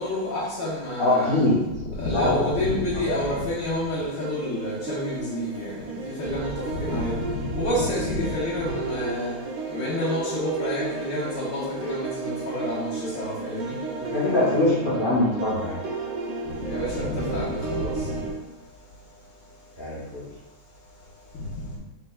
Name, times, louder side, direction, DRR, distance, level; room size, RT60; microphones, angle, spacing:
voice 1, 0.0-1.4 2.0-9.3 9.7-13.8 16.6-18.2, left 1 dB, 60° left, -6 dB, 1.6 m, -28 dB
voice 2, 1.0-1.6 2.1-2.5 13.9-15.7 19.8-20.2, left 1 dB, 85° left, -8 dB, 0.4 m, -23 dB
sound 1, 4.2-18.3, right 3 dB, 65° right, 1.2 m, -33 dB
4.5 x 4.3 x 2.3 m, 1.1 s
omnidirectional pair, 2.4 m